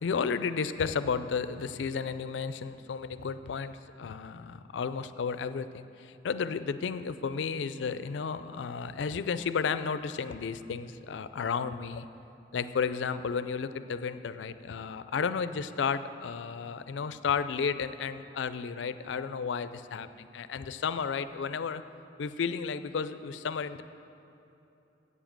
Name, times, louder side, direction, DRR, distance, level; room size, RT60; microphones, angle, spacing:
voice 1, 0.0-12.1 12.5-21.8 22.2-23.8, left 6 dB, 70° left, 13 dB, 0.4 m, -33 dB
8.3 x 7.2 x 7.4 m, 2.9 s
head